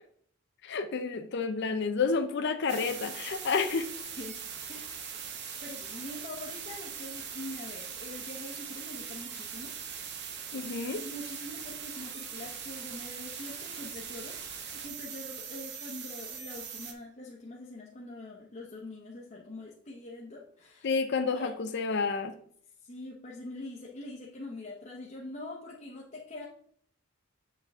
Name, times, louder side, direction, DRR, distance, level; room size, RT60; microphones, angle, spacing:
voice 1, 0.6-3.8 10.5-11.0 20.8-22.3, left 4 dB, 50° left, 8 dB, 0.5 m, -30 dB
sound 1, 2.7-16.9, right 7 dB, 50° right, 1.0 m, -41 dB
voice 2, 4.7-5.2 5.6-9.7 11.0-14.4 14.7-20.9 21.3-21.5 22.8-26.5, left 2 dB, 35° left, -4 dB, 0.9 m, -43 dB
7.5 x 5.5 x 3.5 m, 0.63 s
head